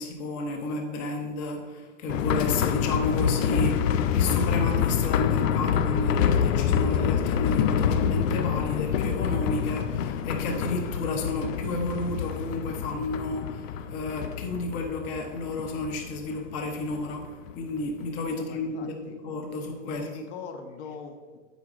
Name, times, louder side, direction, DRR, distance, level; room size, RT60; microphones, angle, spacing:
voice 1, 0.0-20.1, left 2 dB, 20° left, 4 dB, 0.5 m, -32 dB
sound 1, 2.1-17.6 17.8-17.9 18.3-18.4, left 8 dB, 80° left, 0.5 m, -26 dB
voice 2, 18.3-19.2 19.8-21.4, left 5 dB, 60° left, 6 dB, 0.9 m, -42 dB
8.1 x 4.8 x 2.5 m, 1.4 s
supercardioid pair, 155°, 39 cm